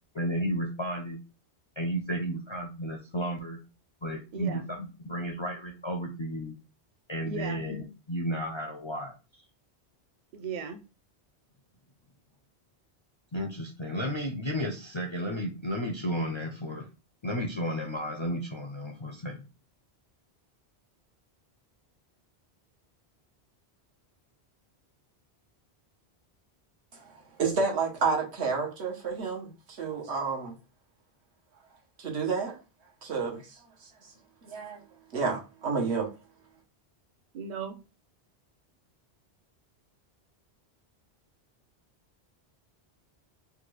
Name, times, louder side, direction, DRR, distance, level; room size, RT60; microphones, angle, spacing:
voice 1, 0.1-1.2 1.8-3.6 4.0-6.5 7.1-9.4 13.3-16.9 17.2-19.4, equal, 45° left, 0.4 m, -33 dB
voice 2, 7.2-7.6 10.3-10.8 37.3-37.8, right 6 dB, 55° right, 0.6 m, -36 dB
voice 3, 27.4-30.5 32.0-32.5 33.0-33.6 34.4-34.8 35.1-36.1, right 4 dB, 80° right, 1.2 m, -30 dB
3.5 x 2.3 x 3.1 m
omnidirectional pair, 1.1 m